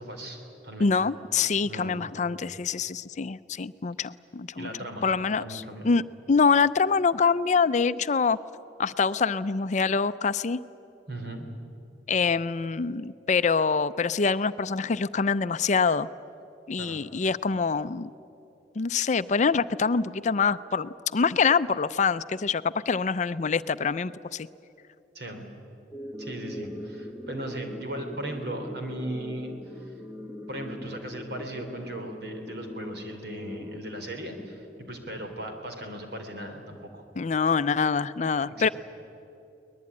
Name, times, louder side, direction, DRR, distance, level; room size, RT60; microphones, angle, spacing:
voice 1, 0.0-0.9 1.6-2.1 4.5-5.1 5.4-5.9 11.1-11.5 16.8-17.0 25.1-25.5 26.2-29.9 30.5-37.0 38.4-38.7, right 1 dB, 60° right, 4 dB, 3.5 m, -37 dB
voice 2, 0.8-4.7 5.0-6.0 6.3-8.4 8.8-10.6 12.1-16.1 16.7-18.1 18.8-24.5 37.2-38.7, left 5 dB, 40° left, 14 dB, 0.5 m, -25 dB
sound 1, 25.9-34.9, left 1 dB, 15° right, 1.5 m, -41 dB
23.0 x 20.0 x 9.7 m, 2.8 s
head